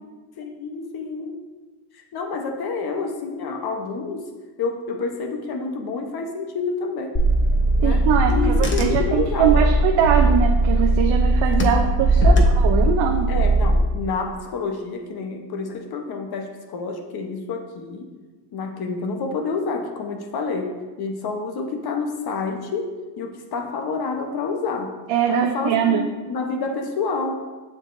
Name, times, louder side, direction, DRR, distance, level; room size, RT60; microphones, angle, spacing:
voice 1, 0.4-1.4 1.9-4.3 4.6-7.2 7.8-9.7 12.2-12.4 13.3-18.1 18.5-25.0 25.3-27.3, left 4 dB, 50° left, 4 dB, 1.1 m, -28 dB
Car / Engine, 7.1-13.8, right 1 dB, 25° left, 0.9 m, -19 dB
voice 2, 7.8-13.3 25.1-26.1, right 8 dB, 70° right, 3 dB, 0.7 m, -22 dB
7.1 x 7.0 x 2.6 m, 1.3 s
cardioid pair, 105°, 47 cm